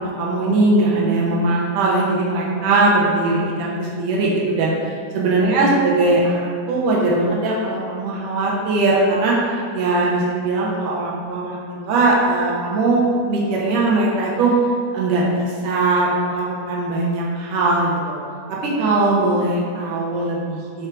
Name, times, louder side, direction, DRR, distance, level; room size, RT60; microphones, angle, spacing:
voice 1, 0.0-4.7 5.1-9.4 9.7-13.0 13.3-14.5 14.9-17.9 18.5-20.9, right 2 dB, 85° right, -4 dB, 2.5 m, -20 dB
6.4 x 4.4 x 4.7 m, 2.1 s
omnidirectional pair, 3.6 m